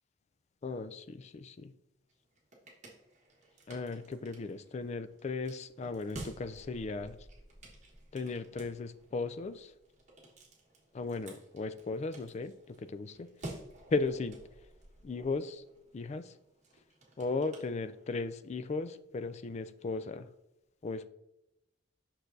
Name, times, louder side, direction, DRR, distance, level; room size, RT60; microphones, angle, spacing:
voice 1, 0.6-1.7 3.7-7.2 8.1-9.7 10.9-12.5 12.8-13.3 13.9-14.4 15.0-15.6 15.9-16.3 17.2-20.3 20.8-21.1, left 3 dB, 35° left, 12 dB, 0.3 m, -36 dB
sound 1, 2.1-18.3, right 1 dB, 40° right, 1.3 m, -52 dB
6.4 x 5.9 x 2.6 m, 0.88 s
head